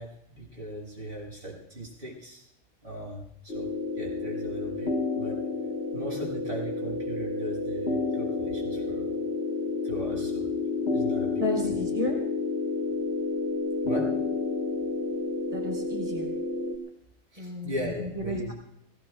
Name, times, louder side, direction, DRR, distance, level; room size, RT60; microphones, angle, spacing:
voice 1, 0.0-2.4 2.8-3.7 4.0-5.4 5.9-9.1 9.8-10.5 10.9-11.4 13.8-14.1 17.3-18.5, equal, 50° right, -3 dB, 7.1 m, -38 dB
sound 1, 3.5-16.7, left 3 dB, 60° left, 1.9 m, -30 dB
voice 2, 11.3-12.2 15.5-16.3 17.4-18.5, left 1 dB, 30° right, 1 dB, 3.9 m, -32 dB
25.5 x 19.5 x 2.4 m, 0.78 s
omnidirectional pair, 1.2 m